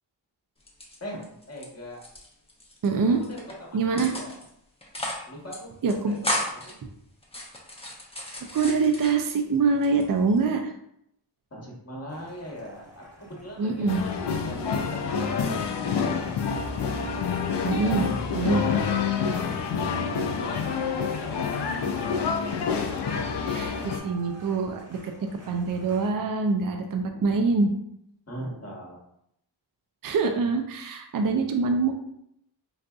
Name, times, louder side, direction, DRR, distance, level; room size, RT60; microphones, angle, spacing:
sound 1, 0.6-1.7 1.9-2.9 3.2-3.5 4.0-4.5 4.8-5.3 5.5-5.6 5.9-6.7 7.2-9.4 9.8-10.5, left 1 dB, 15° left, 0.7 m, -34 dB
voice 1, 1.0-2.0 3.7-4.4 5.2-5.8 6.5-6.7 11.5-15.0 15.5-16.4 17.6-18.8 19.2-21.8 27.1-27.2 28.3-29.0, equal, 35° left, -2 dB, 1.2 m, -41 dB
voice 2, 2.8-3.2 3.7-4.1 5.8-6.1 8.5-10.7 13.6-14.0 17.6-18.1 18.3-18.6 23.4-25.1 25.5-27.7 30.0-31.9, right 4 dB, 50° right, 5 dB, 0.5 m, -24 dB
sound 2, 12.1-26.1, equal, 35° right, 0.9 m, -45 dB
sound 3, 13.9-24.0, left 6 dB, 65° left, 0.5 m, -27 dB
4.0 x 2.5 x 2.3 m, 0.74 s
wide cardioid pair, 55°, 45 cm